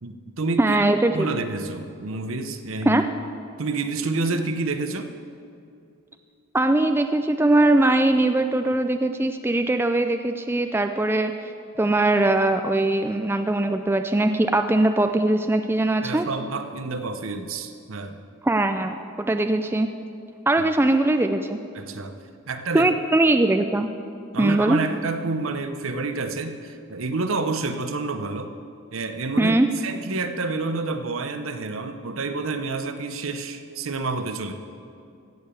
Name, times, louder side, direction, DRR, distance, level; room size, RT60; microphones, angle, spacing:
voice 1, 0.0-0.8 1.1-3.1 3.6-5.1 16.0-18.2 21.7-22.2 22.5-22.9 24.3-28.5 28.9-34.5, right 3 dB, 70° right, 8 dB, 0.8 m, -29 dB
voice 2, 0.6-1.3 2.9-3.0 6.5-11.5 11.8-16.3 18.4-19.9 20.5-21.6 22.7-23.9 24.4-24.8 29.4-29.7, right 2 dB, 10° right, 7 dB, 0.3 m, -21 dB
16.0 x 6.9 x 6.9 m, 2.5 s
head